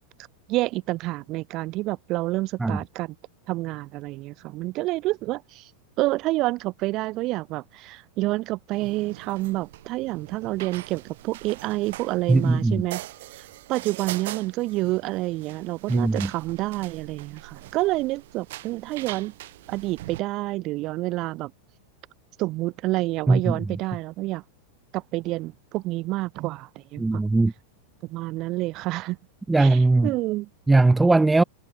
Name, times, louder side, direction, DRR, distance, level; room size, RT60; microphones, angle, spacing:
voice 1, 0.5-3.2 3.5-5.7 6.0-13.0 13.7-19.3 19.7-21.5 22.4-24.4 24.9-27.2 28.1-29.2 29.6-30.5, right 19 dB, 40° right, 3.8 m, -28 dB
sound 1, 8.7-20.2, right 16 dB, 55° right, 3.2 m, -41 dB
voice 2, 12.3-12.8 15.9-16.3 23.3-23.5 27.0-27.5 29.5-30.1 30.7-31.4, right 3 dB, 10° right, 1.3 m, -19 dB
figure-of-eight pair, 90°, 0 cm